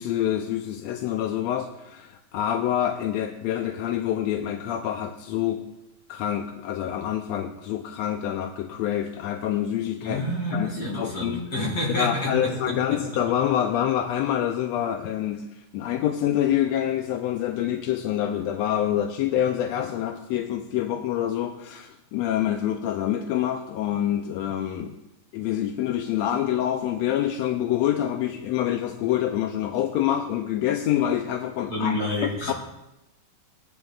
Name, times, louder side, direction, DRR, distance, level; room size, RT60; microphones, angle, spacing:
voice 1, 0.0-5.6 6.1-11.4 11.9-15.4 15.7-25.0 25.3-31.9 32.5-32.6, left 11 dB, 75° left, 4 dB, 1.8 m, -26 dB
voice 2, 10.0-13.0 31.7-32.5, left 1 dB, 50° left, -3 dB, 5.4 m, -28 dB
21.5 x 10.5 x 2.4 m, 0.92 s
omnidirectional pair, 3.3 m